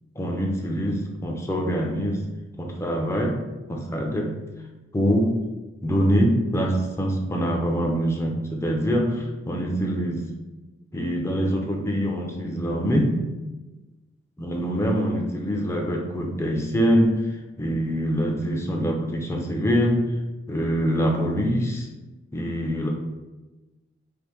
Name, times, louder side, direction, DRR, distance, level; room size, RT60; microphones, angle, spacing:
voice 1, 0.2-2.3 2.6-3.4 3.7-4.4 4.9-5.4 5.8-10.3 10.9-13.3 14.4-17.2 17.6-20.1 20.5-21.9 22.3-22.9, equal, 15° left, 0 dB, 0.4 m, -24 dB
3.4 x 2.5 x 3.0 m, 1.1 s
head